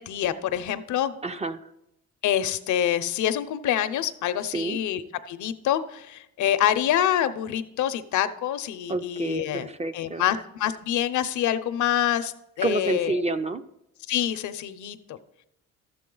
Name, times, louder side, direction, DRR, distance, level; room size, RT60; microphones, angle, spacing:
voice 1, 0.0-1.1 2.2-9.7 9.9-13.2 14.1-15.2, left 11 dB, 75° left, 12 dB, 0.7 m, -26 dB
voice 2, 1.2-1.7 4.5-4.8 8.9-10.2 12.6-13.6, right 2 dB, 20° right, 10 dB, 0.5 m, -28 dB
12.5 x 7.6 x 3.9 m, 0.86 s
cardioid pair, 90°, 30 cm